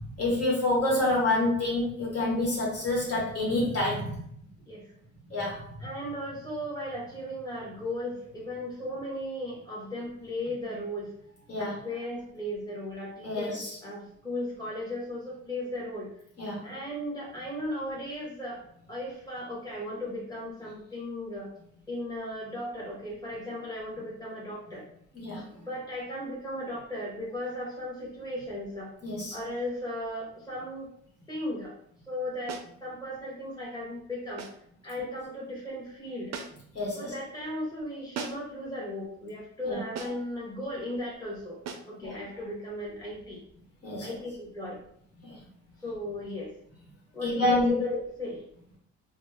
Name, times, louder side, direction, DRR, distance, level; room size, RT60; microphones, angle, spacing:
voice 1, 0.1-4.2 5.3-5.6 11.5-11.7 13.2-13.7 16.4-16.6 25.1-25.4 29.0-29.4 36.7-37.1 39.6-39.8 42.0-42.1 43.8-44.1 45.2-45.4 47.2-47.7, left 2 dB, 50° left, -5 dB, 1.4 m, -27 dB
voice 2, 5.8-11.1 11.6-16.1 16.6-21.5 21.9-24.8 25.6-28.9 29.3-30.9 31.3-31.7 32.1-34.5 34.8-36.3 36.9-41.6 41.9-43.4 44.0-44.8 45.8-46.5 47.1-48.4, left 1 dB, 10° left, -5 dB, 1.2 m, -36 dB
sound 1, 32.5-32.8 34.4-34.7 36.3-36.8 38.1-38.6 40.0-40.3 41.7-42.0, right 5 dB, 60° right, 0.5 m, -39 dB
3.0 x 2.1 x 3.4 m, 0.66 s
cardioid pair, 90°, 30 cm